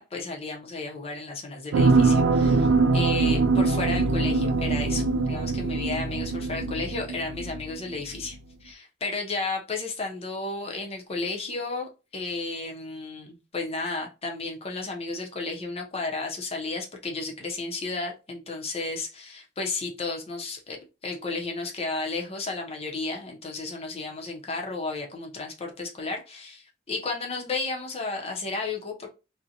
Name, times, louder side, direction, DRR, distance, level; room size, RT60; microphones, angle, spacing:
voice 1, 0.0-29.1, left 3 dB, 30° left, 0.6 m, -33 dB
sound 1, 1.7-7.8 8.2-8.3, right 3 dB, 85° right, 0.3 m, -23 dB
2.5 x 2.1 x 2.7 m
head